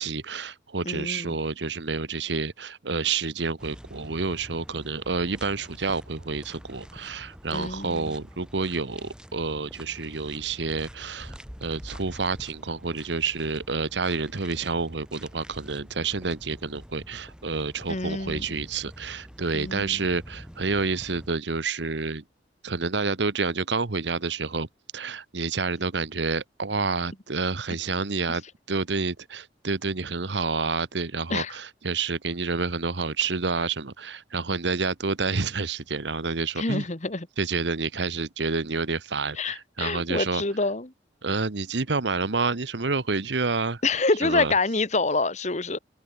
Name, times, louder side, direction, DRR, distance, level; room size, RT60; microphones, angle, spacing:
voice 1, 0.0-22.2 22.6-24.7 24.9-36.8 37.4-40.4 41.2-43.8 44.2-44.5, right 4 dB, 75° right, 1.2 m, -29 dB
voice 2, 0.8-1.4 7.5-8.1 17.9-18.6 19.5-20.0 28.3-28.4 31.3-31.5 36.6-37.3 39.4-40.9 43.8-45.8, left 3 dB, 40° left, 1.6 m, -27 dB
sound 1, 3.6-21.3, equal, 5° right, 2.5 m, -46 dB
head